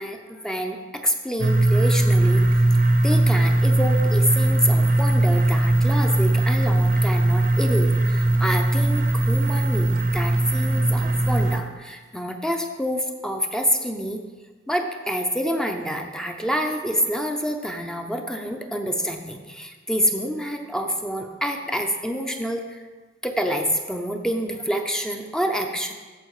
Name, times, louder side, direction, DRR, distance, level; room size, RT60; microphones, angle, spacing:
voice 1, 0.0-2.4 3.0-14.2 14.7-22.8 23.2-25.9, equal, 5° left, 4 dB, 0.6 m, -27 dB
sound 1, 1.4-11.6, right 1 dB, 50° right, 0.7 m, -19 dB
13.5 x 4.7 x 4.8 m, 1.3 s
head